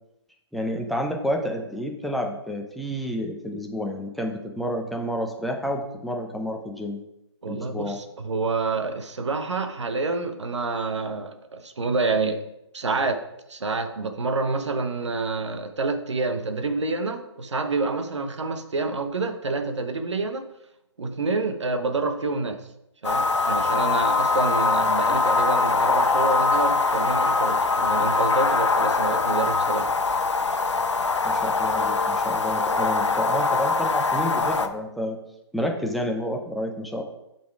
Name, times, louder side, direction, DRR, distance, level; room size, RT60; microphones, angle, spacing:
voice 1, 0.5-7.0 7.5-8.0 31.2-35.2 35.5-37.0, equal, ahead, 1 dB, 0.6 m, -30 dB
voice 2, 7.4-12.4 12.7-13.2 13.5-20.5 21.0-22.6 23.0-29.9, right 3 dB, 80° right, 7 dB, 1.0 m, -27 dB
sound 1, 23.0-34.7, left 4 dB, 90° left, 0.9 m, -22 dB
8.2 x 4.5 x 4.7 m, 0.85 s
hypercardioid pair, 145°, 15 cm